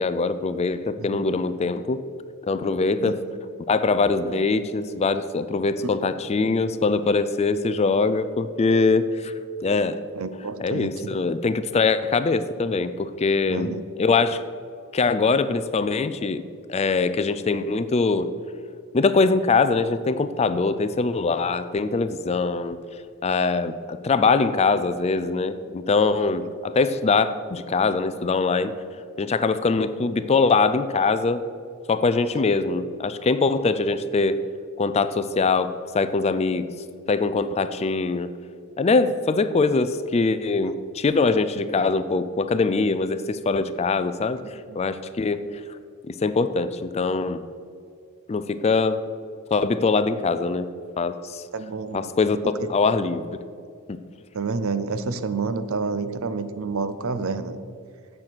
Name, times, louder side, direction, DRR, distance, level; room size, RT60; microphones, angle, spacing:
voice 1, 0.0-2.0 2.4-3.2 3.7-9.3 9.6-10.0 10.6-14.4 14.9-16.4 16.7-18.3 18.9-22.8 23.2-28.7 29.2-31.4 31.9-34.4 34.8-36.7 37.1-38.3 38.8-45.6 46.1-47.4 48.3-49.0 49.5-50.7 51.0-51.4 51.9-52.4 52.7-53.3 53.9-54.0, left 4 dB, 30° left, 12 dB, 0.4 m, -23 dB
voice 2, 10.1-11.2 13.5-13.8 44.4-44.8 51.5-52.1 52.6-52.7 54.3-57.6, right 4 dB, 65° right, 12 dB, 0.6 m, -29 dB
9.0 x 7.4 x 6.0 m, 2.3 s
head